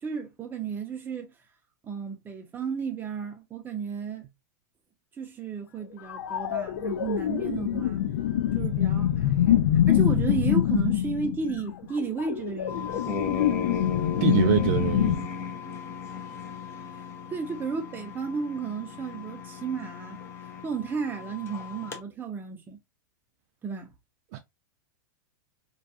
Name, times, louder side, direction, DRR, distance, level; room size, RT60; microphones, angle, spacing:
voice 1, 0.0-1.3 1.8-4.2 5.2-8.0 8.5-9.6 9.9-13.0 17.3-20.2 20.6-22.8 23.6-23.9, right 5 dB, 20° right, 0.7 m, -33 dB
sound 1, 6.1-15.2, left 11 dB, 70° left, 0.4 m, -25 dB
sound 2, 12.7-22.0, left 6 dB, 25° left, 0.7 m, -36 dB
voice 2, 14.2-15.3 24.3-24.4, right 13 dB, 55° right, 0.4 m, -25 dB
2.6 x 2.3 x 2.3 m
hypercardioid pair, 120°, 11 cm